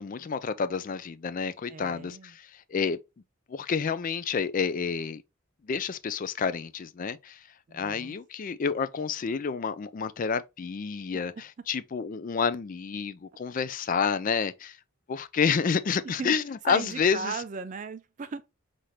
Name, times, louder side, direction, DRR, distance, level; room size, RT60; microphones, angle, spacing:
voice 1, 0.0-3.0 3.5-5.2 5.6-7.5 7.7-14.8 15.1-17.4, left 6 dB, 40° left, 0.3 m, -29 dB
voice 2, 1.7-2.3 7.7-8.1 16.2-16.4 16.7-18.5, right 5 dB, 35° right, 0.3 m, -37 dB
5.7 x 2.6 x 3.1 m
head